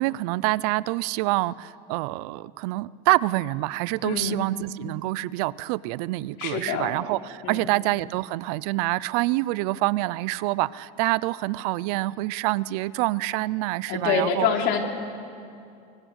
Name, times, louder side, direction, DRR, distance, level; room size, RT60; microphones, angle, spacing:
voice 1, 0.0-14.5, right 19 dB, 65° right, 19 dB, 0.6 m, -26 dB
voice 2, 4.0-4.5 6.4-7.0 7.4-7.7 13.9-14.8, left 6 dB, 55° left, 2 dB, 3.6 m, -26 dB
24.0 x 23.5 x 8.1 m, 2.5 s
supercardioid pair, 140°, 21 cm